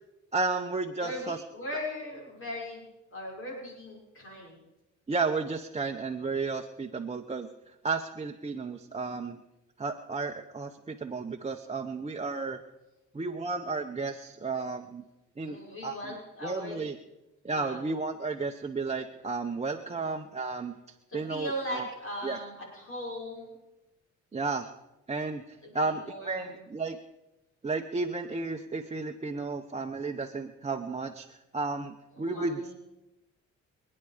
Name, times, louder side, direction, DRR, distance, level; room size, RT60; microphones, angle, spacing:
voice 1, 0.3-1.4 5.1-9.4 9.8-12.6 13.1-15.0 15.4-15.6 15.8-16.1 16.4-16.9 17.4-20.8 21.1-21.9 22.2-22.4 24.3-24.7 25.1-27.0 27.6-32.7, right 3 dB, 20° right, 2 dB, 1.0 m, -33 dB
voice 2, 1.0-2.8 3.1-4.6 15.4-16.9 17.5-17.8 21.1-23.5 25.6-26.6 32.1-32.7, left 1 dB, 45° left, -2 dB, 6.1 m, -39 dB
27.5 x 9.8 x 5.1 m, 0.99 s
cardioid pair, 90°, 30 cm